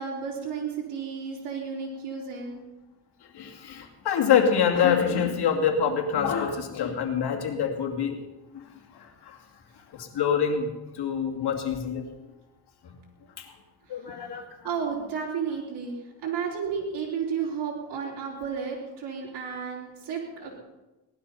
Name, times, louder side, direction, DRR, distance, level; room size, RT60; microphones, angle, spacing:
voice 1, 0.0-2.7 14.6-20.6, right 6 dB, 85° right, -3 dB, 3.7 m, -32 dB
voice 2, 3.3-8.2 8.5-8.7 8.9-9.4 9.9-12.1 12.8-13.0 13.4-13.5 13.9-14.4, left 7 dB, 70° left, 3 dB, 2.5 m, -26 dB
18.5 x 12.0 x 5.6 m, 1.1 s
cardioid pair, 100°, 41 cm